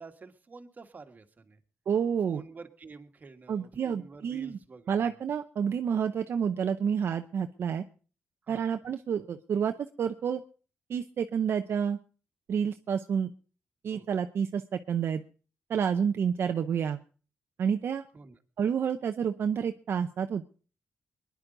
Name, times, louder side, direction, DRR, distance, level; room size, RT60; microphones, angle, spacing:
voice 1, 0.0-1.6 2.2-5.1 8.5-8.7 13.9-14.1 18.1-18.4, right 4 dB, 40° right, 6 dB, 1.6 m, -48 dB
voice 2, 1.9-2.4 3.5-4.6 4.9-7.8 8.5-10.4 10.9-12.0 12.5-13.3 13.8-15.2 15.7-17.0 17.6-18.0 18.6-20.4, right 7 dB, 65° right, 6 dB, 0.7 m, -29 dB
23.0 x 10.5 x 3.9 m, 0.38 s
cardioid pair, 85°, 4 cm